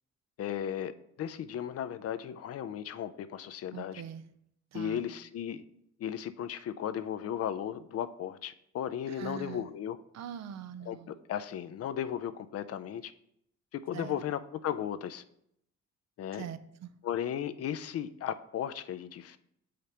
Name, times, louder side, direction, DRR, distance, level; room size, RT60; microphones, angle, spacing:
voice 1, 0.4-0.9 1.2-4.0 4.7-5.6 6.0-10.0 10.9-13.1 13.7-15.2 16.2-16.5 17.0-19.4, left 9 dB, 55° left, 0.4 m, -35 dB
voice 2, 3.7-4.2 4.7-5.0 9.1-9.7 10.1-11.2 13.9-14.2 16.4-16.9, right 9 dB, 60° right, 0.5 m, -42 dB
7.8 x 5.0 x 2.9 m
cardioid pair, 90°, 30 cm